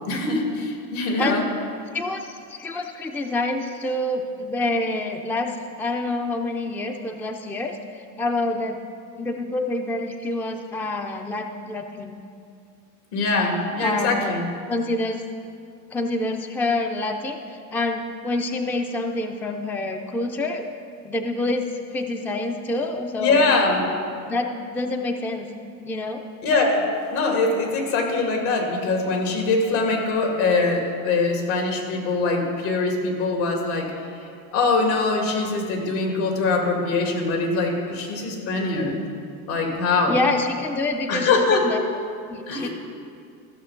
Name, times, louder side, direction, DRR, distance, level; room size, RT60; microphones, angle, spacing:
voice 1, 0.1-1.5 13.1-14.4 23.2-23.8 26.4-26.8 27.1-33.9 34.5-39.0 39.5-40.2 41.1-41.6 42.5-42.7, left 3 dB, 70° left, 1 dB, 2.7 m, -23 dB
voice 2, 1.9-8.8 9.2-12.2 13.8-14.4 14.7-15.3 15.9-20.7 21.0-23.4 24.2-25.5 25.8-26.2 40.1-41.8 42.3-42.7, left 2 dB, 5° left, 5 dB, 0.4 m, -27 dB
14.5 x 6.6 x 5.8 m, 2.4 s
supercardioid pair, 110°, 44 cm